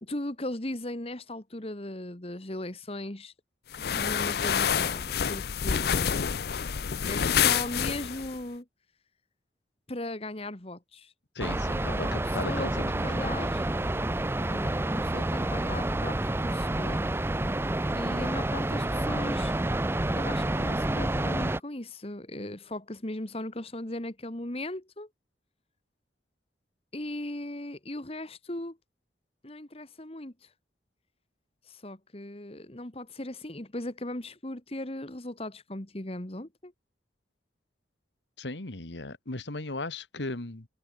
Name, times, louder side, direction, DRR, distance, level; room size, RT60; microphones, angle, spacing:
voice 1, 0.0-3.3 3.8-6.3 7.0-8.7 9.9-11.1 11.8-13.7 14.5-17.1 17.9-19.5 20.2-25.1 26.9-28.8 29.4-30.5 31.7-36.7, left 1 dB, 35° left, 1.8 m, -38 dB
sound 1, 3.7-8.4, left 8 dB, 60° left, 0.5 m, -27 dB
voice 2, 11.4-13.3 38.4-40.7, left 2 dB, 85° left, 2.0 m, -37 dB
sound 2, 11.4-21.6, right 1 dB, 15° right, 0.6 m, -29 dB
head